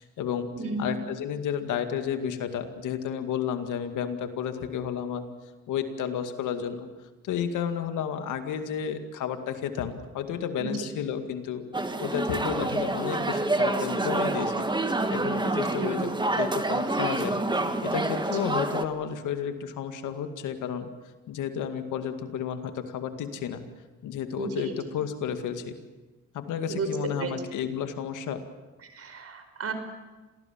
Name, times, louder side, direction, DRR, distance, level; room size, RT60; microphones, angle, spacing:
voice 1, 0.0-0.5 0.8-5.2 5.7-6.9 7.2-11.6 12.0-17.4 17.8-20.9 21.3-23.6 24.0-25.8 26.3-28.4, left 8 dB, 85° left, 7 dB, 2.2 m, -32 dB
voice 2, 0.5-0.9 10.6-10.7 15.7-16.0 24.4-24.7 26.7-26.9 27.2-27.3 28.8-29.7, right 4 dB, 50° right, 8 dB, 5.1 m, -33 dB
sound 1, 11.7-18.8, right 2 dB, 15° right, 1.9 m, -27 dB
27.0 x 18.5 x 7.4 m, 1.2 s
cardioid pair, 90°, 30 cm